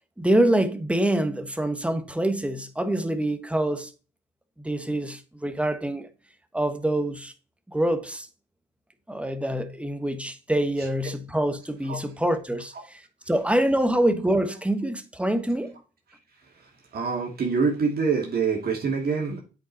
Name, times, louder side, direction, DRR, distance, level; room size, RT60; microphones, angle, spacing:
voice 1, 0.2-3.9 4.6-6.1 6.5-7.3 7.7-8.3 9.1-15.8, right 1 dB, 5° right, 1.2 m, -25 dB
voice 2, 16.9-19.4, right 5 dB, 50° right, 2.6 m, -25 dB
8.4 x 5.2 x 4.2 m
cardioid pair, 90°, 20 cm